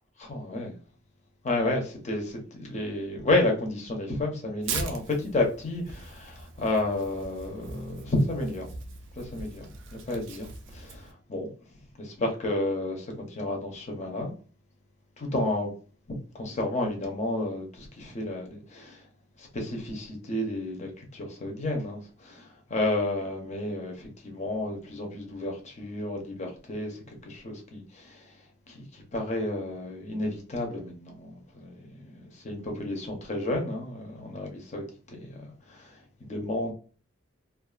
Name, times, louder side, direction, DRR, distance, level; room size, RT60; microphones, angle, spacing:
voice 1, 0.2-0.8 1.4-8.7 9.1-11.5 12.0-14.3 15.2-15.7 16.3-19.0 19.4-28.3 28.7-36.7, left 2 dB, 35° left, 0.6 m, -31 dB
Tearing, 4.6-11.1, right 4 dB, 65° right, 0.4 m, -40 dB
2.3 x 2.3 x 2.3 m
head